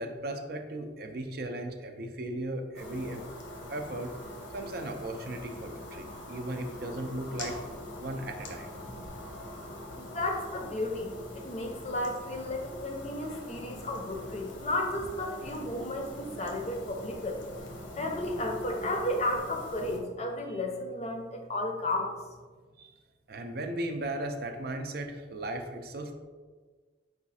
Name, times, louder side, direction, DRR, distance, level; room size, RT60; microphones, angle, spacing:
voice 1, 0.0-3.2 3.7-4.1 4.5-7.6 8.0-8.7 20.5-20.6 22.8-22.9 23.3-26.1, right 1 dB, 55° right, 5 dB, 0.4 m, -36 dB
sound 1, 2.7-20.0, left 1 dB, 85° left, 0.8 m, -43 dB
voice 2, 10.0-17.4 18.0-22.1, left 1 dB, 35° left, 2 dB, 0.5 m, -33 dB
4.9 x 2.4 x 4.0 m, 1.4 s
head